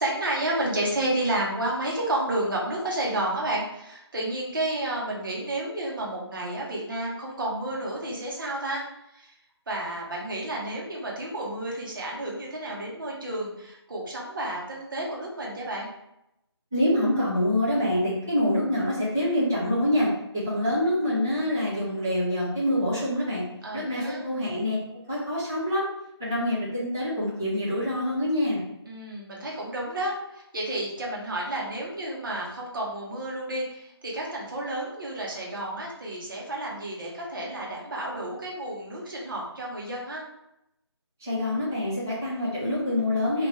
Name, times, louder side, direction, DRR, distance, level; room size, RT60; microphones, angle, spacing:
voice 1, 0.0-8.8 9.1-9.3 9.7-15.9 23.6-24.2 28.9-40.2, right 1 dB, 50° right, -3 dB, 1.0 m, -31 dB
voice 2, 16.7-20.1 20.3-23.4 23.7-24.8 25.1-25.9 26.2-28.6 41.2-43.5, left 1 dB, 5° right, -9 dB, 0.3 m, -26 dB
3.0 x 2.5 x 3.0 m, 0.84 s
figure-of-eight pair, 155°, 14 cm